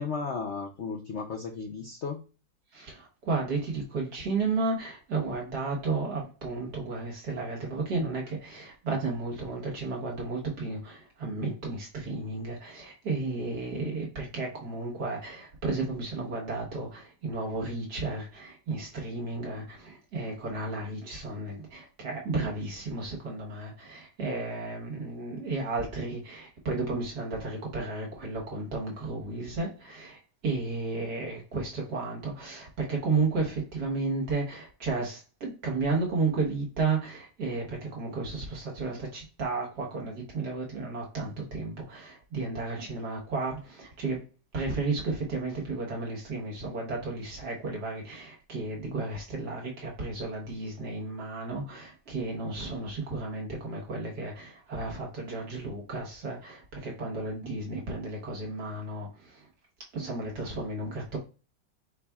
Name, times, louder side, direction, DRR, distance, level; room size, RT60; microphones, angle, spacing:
voice 1, 0.0-2.2, left 5 dB, 60° left, 0.7 m, -34 dB
voice 2, 2.7-44.2 44.5-59.1 59.9-61.2, right 3 dB, 65° right, 1.8 m, -33 dB
5.0 x 4.1 x 2.4 m
omnidirectional pair, 1.9 m